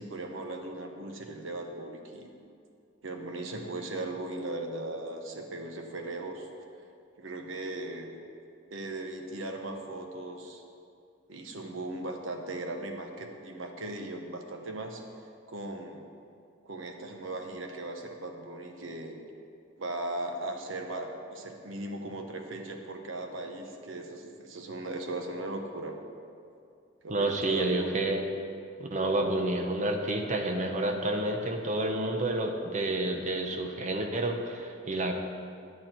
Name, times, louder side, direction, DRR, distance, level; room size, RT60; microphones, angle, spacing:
voice 1, 0.0-2.3 3.0-6.5 7.2-8.1 8.7-10.6 11.3-15.0 15.5-16.0 16.6-19.1 19.8-25.9 27.0-28.0, right 2 dB, 80° right, 4 dB, 1.1 m, -38 dB
voice 2, 27.1-28.3 28.8-35.1, right 2 dB, 40° right, 3 dB, 0.9 m, -29 dB
9.5 x 9.0 x 4.5 m, 2.5 s
head